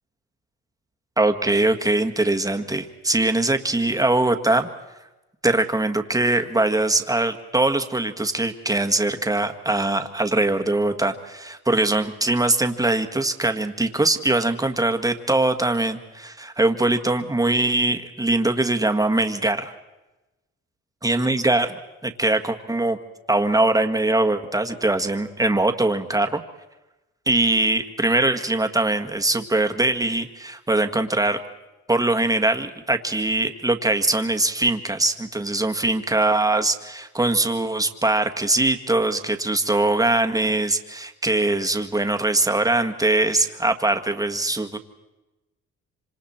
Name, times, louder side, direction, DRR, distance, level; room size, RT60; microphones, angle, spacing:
voice 1, 1.2-4.7 5.4-19.7 21.0-21.8 22.0-23.0 23.3-26.4 27.3-31.4 31.9-44.8, right 2 dB, 10° right, 6 dB, 1.6 m, -22 dB
26.0 x 26.0 x 4.4 m, 1.1 s
cardioid pair, 90°, 30 cm